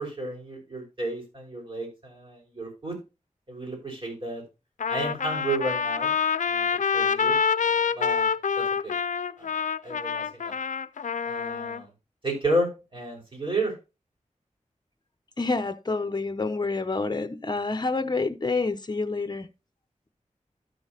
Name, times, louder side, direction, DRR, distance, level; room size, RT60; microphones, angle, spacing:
voice 1, 0.0-3.0 3.5-4.4 4.9-6.1 6.5-7.4 7.9-8.3 8.6-8.9 9.4-9.5 9.8-10.5 11.3-11.9 12.2-13.7, right 1 dB, 45° right, 5.6 m, -32 dB
Trumpet, 4.8-11.8, left 6 dB, 80° left, 0.4 m, -26 dB
voice 2, 15.4-19.5, left 3 dB, 35° left, 0.9 m, -28 dB
12.5 x 6.2 x 3.0 m
wide cardioid pair, 75°, 13 cm